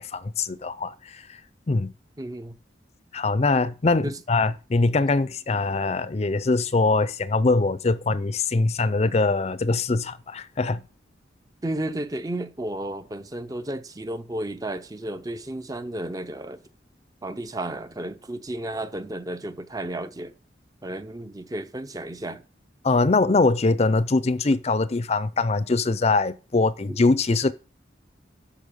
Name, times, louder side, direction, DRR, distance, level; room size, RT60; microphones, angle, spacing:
voice 1, 0.0-1.4 1.7-1.9 3.1-10.8 22.8-27.5, left 3 dB, 35° left, 0.5 m, -23 dB
voice 2, 2.2-2.6 4.0-4.2 11.6-16.6 17.2-20.3 20.8-22.4 26.9-27.0, right 1 dB, 20° right, 0.5 m, -33 dB
13.0 x 5.5 x 5.3 m
head